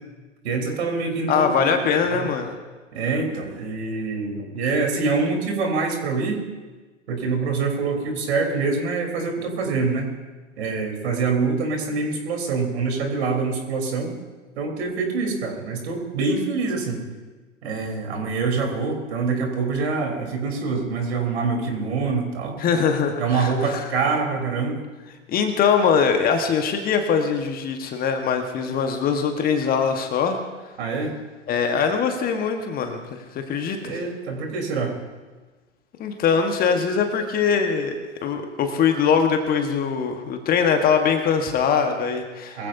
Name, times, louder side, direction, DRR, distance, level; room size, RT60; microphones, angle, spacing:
voice 1, 0.4-2.3 2.9-6.4 7.1-10.1 10.6-14.1 14.6-17.0 17.6-22.6 23.2-24.8 30.8-31.1 33.8-34.9 42.6-42.7, right 4 dB, 60° right, 2 dB, 3.9 m, -25 dB
voice 2, 1.3-2.5 22.6-23.9 25.3-30.4 31.5-34.0 36.0-42.7, left 6 dB, 25° left, 5 dB, 1.3 m, -22 dB
22.5 x 15.5 x 2.7 m, 1.3 s
hypercardioid pair, 115°, 37 cm